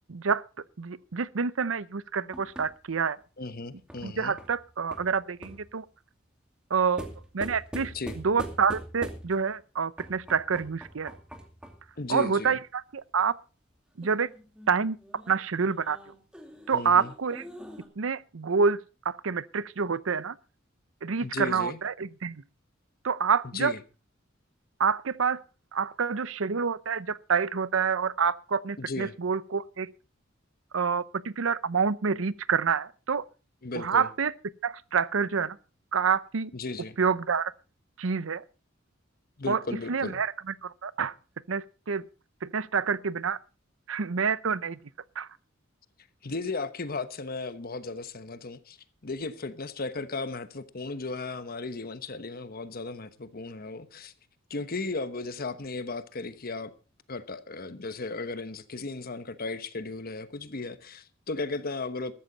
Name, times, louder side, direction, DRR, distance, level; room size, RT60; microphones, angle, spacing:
voice 1, 0.1-0.4 0.8-3.2 4.0-5.8 6.7-7.1 7.3-7.9 8.2-11.2 12.1-13.3 14.0-14.3 14.7-15.0 15.3-16.0 16.7-17.4 18.0-18.8 19.0-20.4 21.0-22.4 23.0-23.7 24.8-25.4 25.7-29.9 30.7-33.2 33.7-34.3 34.6-35.6 35.9-36.5 37.0-37.5 38.0-38.4 39.5-39.6 39.9-40.3 40.6-41.1 41.5-42.0 42.4-43.4 43.9-44.8 45.2-45.3, right 6 dB, 85° right, 0.7 m, -27 dB
sound 1, 2.3-5.7 7.0-9.5 10.0-11.9 14.0-17.9, equal, 5° right, 2.5 m, -44 dB
voice 2, 3.4-4.4 7.9-8.2 12.0-12.6 16.7-17.1 21.2-21.8 23.4-23.8 28.8-29.2 33.6-34.1 36.5-37.0 39.4-40.2 46.2-48.8 49.0-54.1 54.5-56.7 57.1-62.1, left 3 dB, 50° left, 1.1 m, -35 dB
14.5 x 13.0 x 4.0 m
head